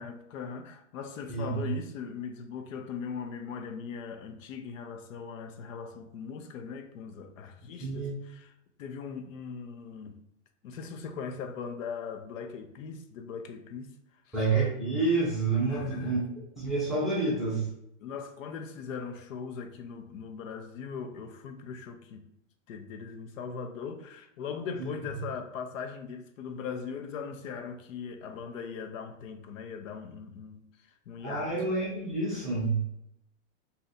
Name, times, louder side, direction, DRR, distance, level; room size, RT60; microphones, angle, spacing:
voice 1, 0.0-8.5 8.8-10.2 10.6-14.4 15.7-16.2 18.0-22.2 22.7-30.6 31.1-31.5, left 6 dB, 85° left, 0.6 m, -39 dB
voice 2, 1.3-1.7 7.8-8.1 14.3-16.2 16.6-17.7 24.8-24.9 31.2-32.9, right 3 dB, ahead, 0.4 m, -28 dB
2.7 x 2.5 x 4.0 m
supercardioid pair, 165°, 38 cm